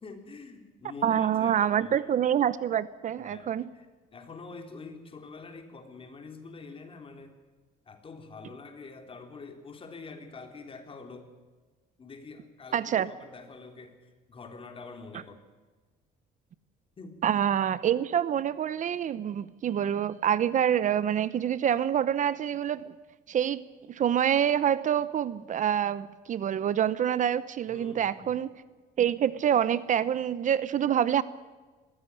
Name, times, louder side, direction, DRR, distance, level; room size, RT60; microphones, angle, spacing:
voice 1, 0.0-2.1 3.2-7.3 7.9-11.3 12.0-15.4 17.0-17.4 27.7-28.4, left 4 dB, 30° left, 5 dB, 3.5 m, -46 dB
voice 2, 1.0-3.6 12.7-13.1 17.2-22.9 23.3-23.6 23.9-28.5 29.0-31.2, right 9 dB, 50° right, 17 dB, 0.8 m, -26 dB
21.5 x 15.5 x 10.0 m, 1.3 s
cardioid pair, 110°, 17 cm